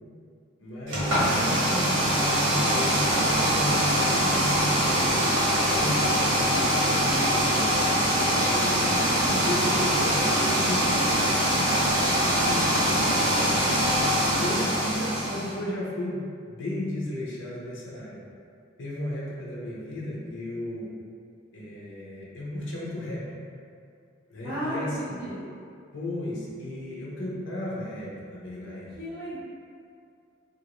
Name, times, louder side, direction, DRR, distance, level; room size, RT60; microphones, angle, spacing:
voice 1, 0.6-5.2 5.6-7.5 8.1-8.9 9.2-11.8 12.4-13.8 14.4-18.2 18.8-20.9 21.5-23.2 24.3-25.2 25.9-28.9, left 1 dB, 75° left, -6 dB, 0.7 m, -34 dB
sound 1, 0.9-15.5, equal, 85° right, 1.0 m, -23 dB
voice 2, 24.4-25.4 28.9-29.4, equal, 15° right, -17 dB, 1.0 m, -35 dB
2.9 x 2.5 x 3.0 m, 2.4 s
head